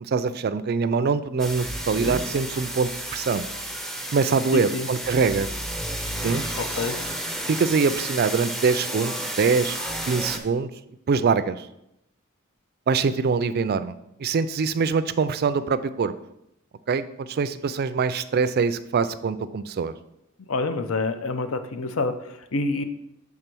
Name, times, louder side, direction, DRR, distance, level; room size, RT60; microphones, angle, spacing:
voice 1, 0.0-3.4 4.1-5.5 6.2-6.4 7.5-10.7 11.1-11.7 12.9-16.1 16.9-19.9, right 5 dB, 50° right, 13 dB, 0.4 m, -24 dB
sound 1, 1.4-10.4, right 1 dB, ahead, 0.5 m, -32 dB
voice 2, 4.5-4.9 6.6-7.0 20.5-22.8, left 3 dB, 70° left, 9 dB, 0.6 m, -27 dB
6.7 x 3.7 x 6.0 m, 0.81 s
head